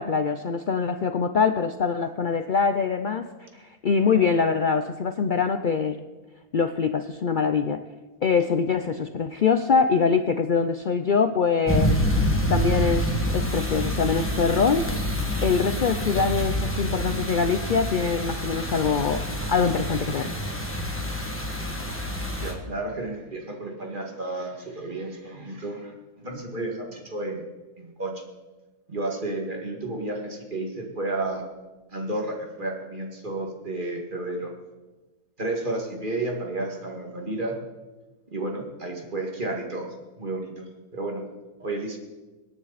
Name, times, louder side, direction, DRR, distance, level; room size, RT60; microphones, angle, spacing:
voice 1, 0.0-3.3 3.5-6.0 6.5-7.8 8.2-12.0 12.5-13.1 13.3-14.8 15.4-20.3, left 5 dB, 75° left, 8 dB, 0.4 m, -23 dB
sound 1, 11.7-22.5, equal, 10° left, 1.8 m, -27 dB
voice 2, 22.4-25.9 26.2-27.4 27.8-28.2 28.9-31.4 31.9-34.5 35.4-37.6 38.3-41.2 41.6-42.0, right 2 dB, 30° right, 1 dB, 2.2 m, -32 dB
26.0 x 9.7 x 4.1 m, 1.2 s
omnidirectional pair, 1.6 m